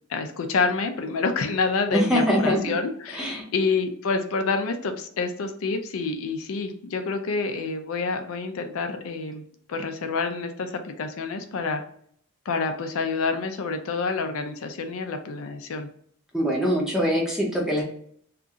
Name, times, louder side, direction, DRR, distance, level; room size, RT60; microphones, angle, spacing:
voice 1, 0.1-9.4 9.7-11.8 12.5-15.9, left 4 dB, 75° left, 7 dB, 0.4 m, -28 dB
voice 2, 1.9-2.6 3.1-3.4 16.3-17.8, equal, 5° right, -1 dB, 0.6 m, -23 dB
2.8 x 2.5 x 2.4 m, 0.62 s
head